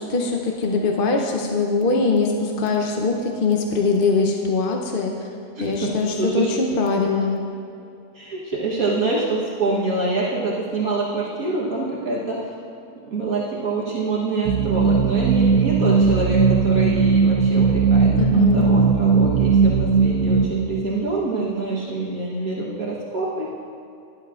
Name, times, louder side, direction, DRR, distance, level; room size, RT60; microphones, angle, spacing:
voice 1, 0.0-5.1 5.6-7.4 18.1-18.7, left 4 dB, 50° left, 1 dB, 0.7 m, -22 dB
voice 2, 5.5-6.5 8.1-12.5 13.1-23.5, right 3 dB, 60° right, -5 dB, 1.6 m, -25 dB
sound 1, 14.5-20.4, right 5 dB, 75° right, 1.1 m, -18 dB
17.0 x 11.0 x 2.4 m, 2.7 s
omnidirectional pair, 1.8 m